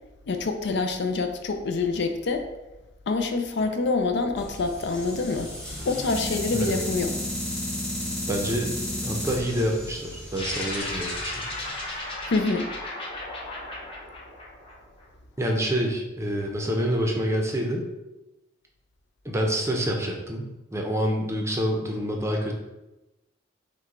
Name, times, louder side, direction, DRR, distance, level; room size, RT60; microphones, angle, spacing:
voice 1, 0.3-2.4 3.1-5.5 5.9-7.1 12.3-12.7, left 3 dB, 60° left, 6 dB, 0.4 m, -26 dB
sound 1, 4.4-12.5, left 1 dB, 5° left, 1.0 m, -34 dB
voice 2, 8.3-11.3 15.4-17.8 19.2-22.5, equal, 15° right, 1 dB, 0.6 m, -27 dB
sound 2, 10.3-15.0, left 1 dB, 30° left, 0.9 m, -35 dB
6.0 x 2.2 x 3.8 m, 1.0 s
head